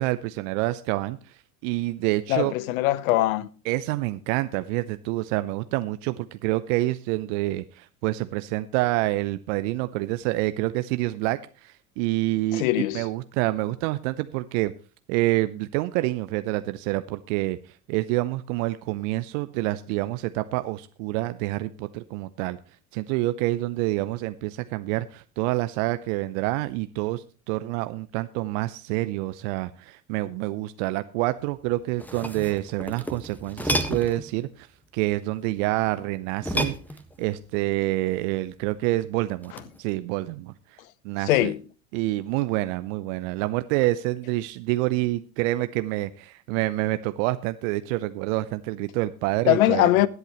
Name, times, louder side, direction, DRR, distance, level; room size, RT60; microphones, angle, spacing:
voice 1, 0.0-2.5 3.6-12.7 12.9-14.7 15.1-22.6 22.9-34.7 34.9-36.8 37.2-39.5 39.8-40.8 41.0-41.5 41.9-49.9, right 18 dB, 60° right, 0.8 m, -27 dB
voice 2, 2.3-3.5 12.5-13.0 41.3-41.6 49.5-50.1, left 15 dB, 70° left, 0.9 m, -21 dB
sound 1, 31.8-34.3 36.4-37.4 39.4-39.8, equal, 5° left, 1.5 m, -31 dB
21.5 x 8.1 x 3.1 m
hypercardioid pair, 75°, 42 cm